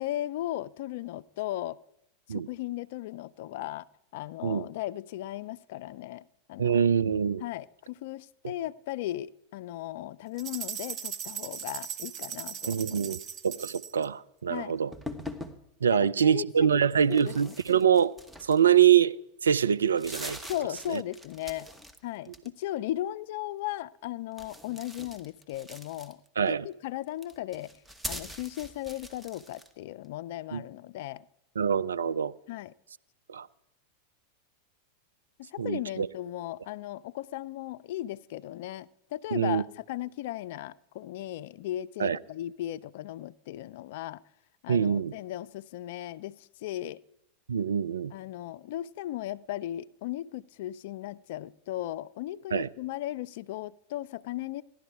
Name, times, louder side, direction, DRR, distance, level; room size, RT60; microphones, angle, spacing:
voice 1, 0.0-1.8 2.3-3.9 4.1-6.2 6.5-6.8 7.4-13.2 14.5-14.8 15.9-17.6 20.5-21.7 22.0-26.2 26.5-27.7 28.0-31.2 32.5-32.7 35.5-44.2 44.6-47.0 48.1-54.6, left 14 dB, 60° left, 0.4 m, -36 dB
voice 2, 6.6-7.4 8.4-8.5 12.7-13.2 13.4-14.9 15.8-18.1 18.4-19.2 19.4-20.4 20.9-21.0 26.4-26.7 30.5-30.6 31.6-32.3 33.3-33.5 35.6-36.1 39.3-39.6 42.0-42.2 44.7-45.1 47.5-48.1 52.5-52.7, right 8 dB, 80° right, 0.5 m, -24 dB
sound 1, 10.4-14.0, right 8 dB, 35° right, 1.2 m, -38 dB
sound 2, 14.9-15.6 17.0-19.0 19.4-19.5 19.8-22.0 22.2-22.8 24.3-26.4 27.1-29.7, left 1 dB, 5° right, 1.5 m, -42 dB
17.0 x 12.0 x 4.7 m
figure-of-eight pair, 90°, 0 cm